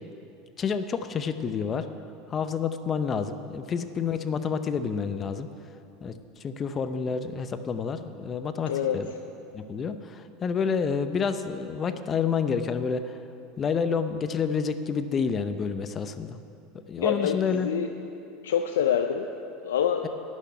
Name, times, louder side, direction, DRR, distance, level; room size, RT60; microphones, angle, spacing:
voice 1, 0.6-1.9 2.3-5.5 6.0-9.1 9.5-13.2 13.6-16.4 16.7-17.7, left 6 dB, 35° left, 10 dB, 0.7 m, -29 dB
voice 2, 8.7-9.0 17.0-17.9 18.4-19.3 19.6-20.1, left 8 dB, 85° left, 5 dB, 0.5 m, -26 dB
11.5 x 6.4 x 9.3 m, 2.7 s
hypercardioid pair, 90°, 0 cm